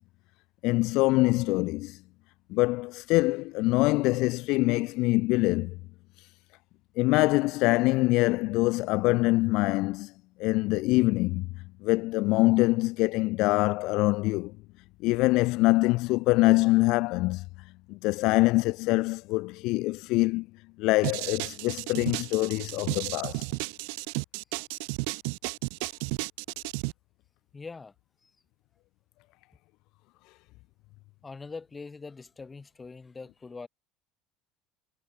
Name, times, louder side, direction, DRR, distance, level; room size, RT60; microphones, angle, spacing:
voice 1, 0.6-2.0 2.5-5.7 7.0-10.1 10.4-11.5 11.8-14.5 15.0-17.4 17.9-20.5 20.8-23.5, left 22 dB, 65° left, 0.7 m, -24 dB
sound 1, 21.0-26.9, right 40 dB or more, 80° right, 0.7 m, -33 dB
voice 2, 27.5-27.9 28.2-28.3 31.2-33.7, left 4 dB, 15° left, 7.5 m, -42 dB
cardioid pair, 145°, 0 cm